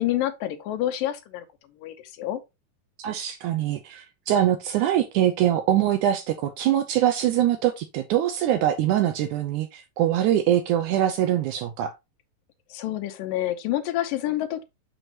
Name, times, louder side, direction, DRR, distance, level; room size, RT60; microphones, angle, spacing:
voice 1, 0.0-1.5 1.8-2.4 12.7-14.6, left 13 dB, 85° left, 2.5 m, -28 dB
voice 2, 3.0-11.9, right 11 dB, 80° right, 1.9 m, -23 dB
6.3 x 6.3 x 2.9 m
omnidirectional pair, 3.9 m